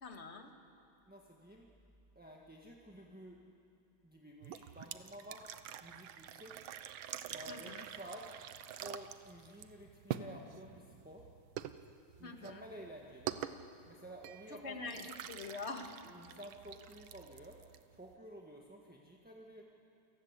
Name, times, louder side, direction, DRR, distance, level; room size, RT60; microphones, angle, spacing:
voice 1, 0.0-0.5 7.5-7.8 12.2-12.6 14.5-15.9, left 3 dB, 35° left, 5 dB, 1.8 m, -45 dB
voice 2, 1.0-1.7 2.1-3.4 4.0-5.5 5.8-6.5 7.2-8.3 8.8-11.3 12.2-13.4 13.9-15.1 16.0-17.6 17.9-19.6, equal, 5° right, -1 dB, 1.2 m, -52 dB
sound 1, 4.4-18.2, right 10 dB, 75° right, 1.6 m, -47 dB
28.5 x 18.5 x 8.2 m, 2.8 s
omnidirectional pair, 2.3 m